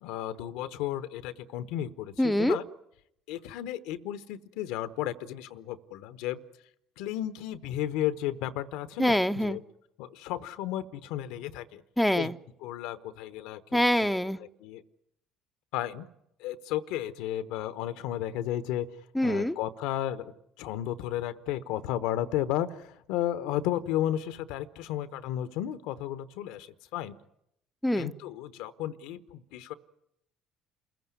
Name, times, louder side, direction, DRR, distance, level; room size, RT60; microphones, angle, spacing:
voice 1, 0.0-2.6 3.3-6.4 7.0-9.6 10.0-11.8 12.1-12.3 12.6-13.8 14.4-14.8 15.7-16.1 16.4-18.9 19.2-20.3 20.6-27.1 27.9-29.7, left 12 dB, 75° left, 15 dB, 0.9 m, -33 dB
voice 2, 2.2-2.6 9.0-9.6 12.0-12.3 13.7-14.4 19.1-19.6 27.8-28.1, equal, 5° left, 8 dB, 0.8 m, -25 dB
27.5 x 15.5 x 9.6 m, 0.77 s
hypercardioid pair, 65°, 0 cm